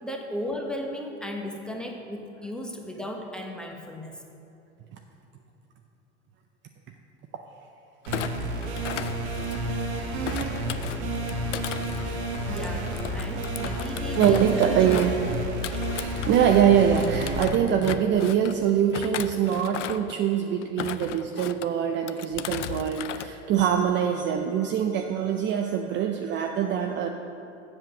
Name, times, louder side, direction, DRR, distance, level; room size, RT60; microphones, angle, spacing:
voice 1, 0.0-4.2 12.5-14.8, left 1 dB, ahead, 2 dB, 1.1 m, -35 dB
Thump thud, 8.0-9.8 10.2-16.6 16.9-18.5 18.9-20.2 20.6-21.7 22.1-23.3 23.6-23.9, left 11 dB, 80° left, 0.5 m, -36 dB
sound 1, 8.1-17.5, right 1 dB, 60° right, 1.6 m, -30 dB
voice 2, 14.1-15.2 15.5-27.1, right 8 dB, 30° right, 4 dB, 0.5 m, -24 dB
7.7 x 7.4 x 6.2 m, 2.8 s
hypercardioid pair, 90°, 35 cm